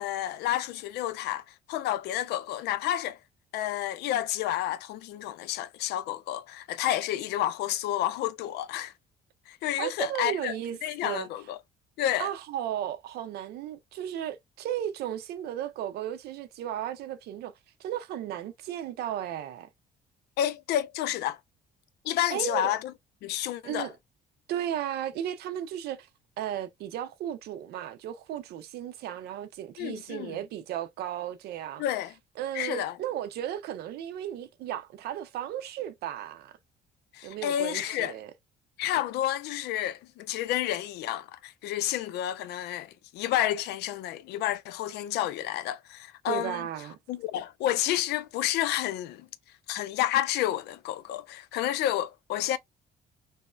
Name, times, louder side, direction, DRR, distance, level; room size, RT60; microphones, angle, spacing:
voice 1, 0.0-3.2 3.5-8.9 9.5-10.5 10.8-11.6 12.0-12.3 20.4-21.4 22.0-22.9 23.2-23.9 29.8-30.4 31.8-32.1 32.5-33.0 37.1-38.1 38.8-46.6 47.1-49.3 49.7-52.6, left 12 dB, 75° left, 0.4 m, -30 dB
voice 2, 9.8-11.3 12.2-17.5 17.8-19.7 22.3-22.8 23.6-23.9 24.5-26.1 26.4-31.8 32.4-36.5 37.2-38.3 46.3-47.0, right 11 dB, 70° right, 0.5 m, -35 dB
3.0 x 2.0 x 2.3 m
cardioid pair, 110°, 17 cm